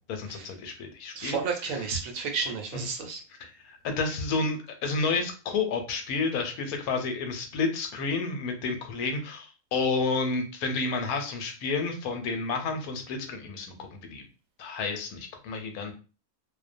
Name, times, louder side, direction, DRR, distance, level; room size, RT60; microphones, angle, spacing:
voice 1, 0.1-1.4 1.7-1.8 2.7-2.8 3.4-14.2 14.6-15.9, left 4 dB, 80° left, 5 dB, 1.1 m, -30 dB
voice 2, 1.2-3.2, right 5 dB, 70° right, 3 dB, 0.9 m, -32 dB
2.5 x 2.1 x 2.5 m, 0.34 s
omnidirectional pair, 1.6 m